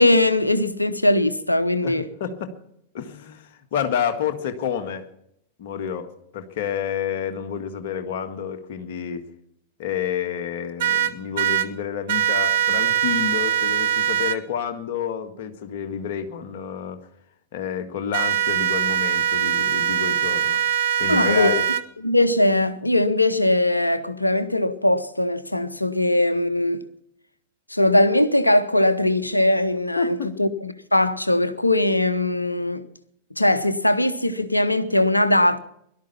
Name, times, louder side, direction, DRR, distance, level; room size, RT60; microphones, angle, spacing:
voice 1, 0.0-2.1 21.1-21.5 22.0-26.8 27.7-32.8 33.4-35.6, left 1 dB, 85° left, 0.9 m, -20 dB
voice 2, 1.8-2.5 2.9-5.1 5.6-6.1 6.3-9.2 9.8-17.0 17.5-21.6 30.0-30.3, left 8 dB, 55° left, 1.7 m, -29 dB
sound 1, 10.8-11.7 12.1-14.4 18.1-21.8, right 9 dB, 55° right, 1.0 m, -22 dB
18.0 x 12.0 x 5.8 m
figure-of-eight pair, 90°, 0 cm